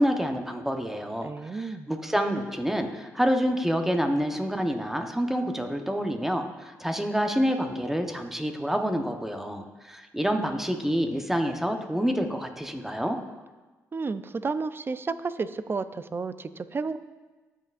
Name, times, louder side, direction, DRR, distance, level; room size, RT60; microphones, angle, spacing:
voice 1, 0.0-13.2, equal, 5° right, 4 dB, 1.0 m, -27 dB
voice 2, 1.2-1.9 13.9-17.0, right 4 dB, 35° right, 13 dB, 0.5 m, -32 dB
15.0 x 5.6 x 2.5 m, 1.2 s
supercardioid pair, 65°, 7 cm